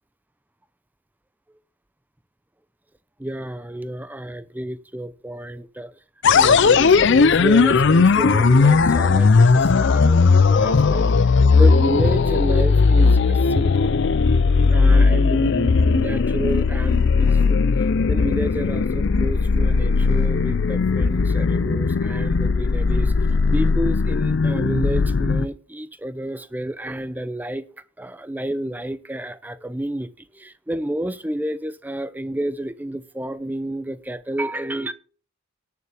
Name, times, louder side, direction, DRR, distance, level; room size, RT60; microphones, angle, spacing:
voice 1, 3.2-5.9 6.3-13.9 14.4-34.9, right 1 dB, 10° right, 0.5 m, -30 dB
sound 1, 6.2-25.5, left 4 dB, 55° left, 0.5 m, -17 dB
18.5 x 6.9 x 3.4 m
head